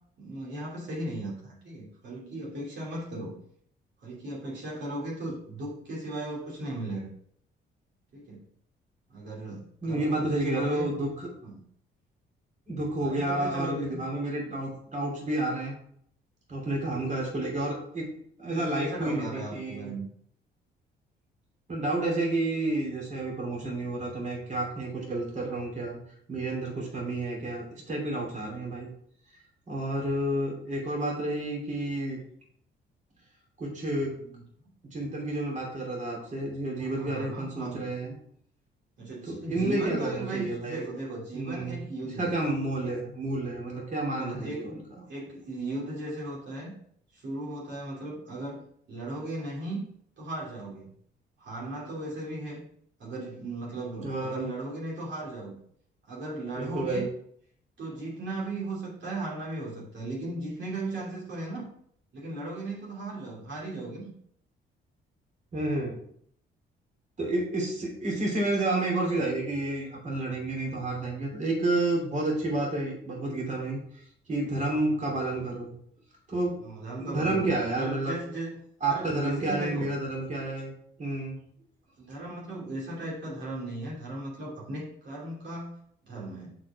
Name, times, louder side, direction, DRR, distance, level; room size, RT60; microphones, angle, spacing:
voice 1, 0.2-3.4 4.0-7.1 8.1-8.4 9.1-10.9 11.4-11.6 13.0-14.0 18.5-20.0 34.2-34.4 36.8-37.9 39.0-42.4 42.8-43.0 44.1-44.8 45.1-46.7 47.1-49.8 50.2-50.9 51.4-52.6 53.0-55.6 56.1-57.1 57.8-61.7 62.1-64.1 76.6-78.5 78.9-79.9 82.0-85.8 86.0-86.5, right 2 dB, 65° right, -5 dB, 2.7 m, -37 dB
voice 2, 9.8-11.3 12.7-15.7 16.5-18.1 18.4-19.9 21.7-26.0 26.3-28.9 29.7-32.2 33.6-34.1 34.9-38.1 39.3-40.9 41.3-41.8 42.2-44.8 54.0-54.5 56.6-57.0 65.5-66.0 67.2-73.8 74.3-75.8 76.3-76.5 77.0-78.1 78.8-80.7 81.0-81.4, right 2 dB, 40° right, -2 dB, 3.0 m, -30 dB
6.0 x 5.0 x 4.8 m, 0.65 s
cardioid pair, 90°, 20 cm